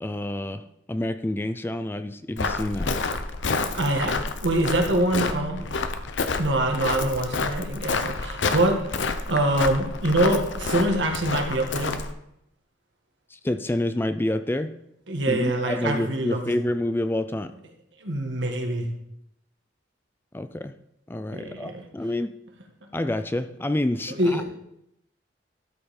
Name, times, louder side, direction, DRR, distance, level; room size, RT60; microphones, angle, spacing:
voice 1, 0.0-2.9 13.3-14.7 15.3-17.5 20.3-20.7 21.1-22.3 22.9-24.4, left 1 dB, 10° left, 10 dB, 0.3 m, -28 dB
Walk footsteps, 2.4-12.1, left 4 dB, 80° left, 0.7 m, -29 dB
voice 2, 3.7-4.2 4.4-5.7 6.4-8.8 9.3-11.9 15.1-16.4 18.0-18.9 21.3-21.8 24.1-24.4, right 1 dB, 75° right, 2 dB, 1.8 m, -24 dB
12.5 x 5.4 x 4.3 m, 0.78 s
head